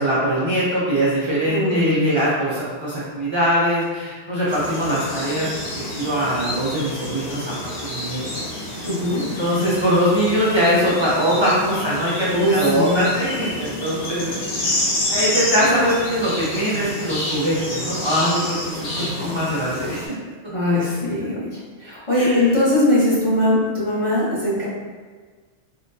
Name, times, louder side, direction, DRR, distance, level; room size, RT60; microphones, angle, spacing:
voice 1, 0.0-5.5 5.7-8.5 9.2-14.8 15.1-20.1 20.7-20.8 22.1-22.6, equal, 40° right, -9 dB, 0.4 m, -22 dB
voice 2, 1.5-2.1 8.8-9.2 11.6-11.8 12.3-13.1 19.0-19.4 20.5-24.6, left 1 dB, 30° left, -9 dB, 0.8 m, -21 dB
sound 1, 4.5-20.1, left 1 dB, 60° left, 1.0 m, -29 dB
3.6 x 2.2 x 2.6 m, 1.5 s
omnidirectional pair, 1.3 m